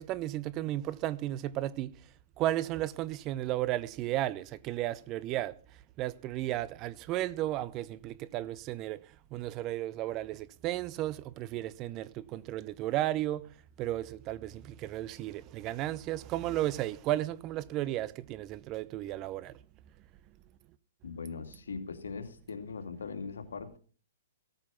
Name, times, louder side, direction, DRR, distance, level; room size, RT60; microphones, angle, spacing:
voice 1, 0.0-1.9 2.4-5.5 6.0-9.0 9.3-13.4 13.8-19.5, right 14 dB, 30° right, 0.7 m, -34 dB
voice 2, 21.0-23.8, left 5 dB, 85° left, 2.6 m, -40 dB
16.5 x 9.1 x 5.7 m
hypercardioid pair, 140°, 0 cm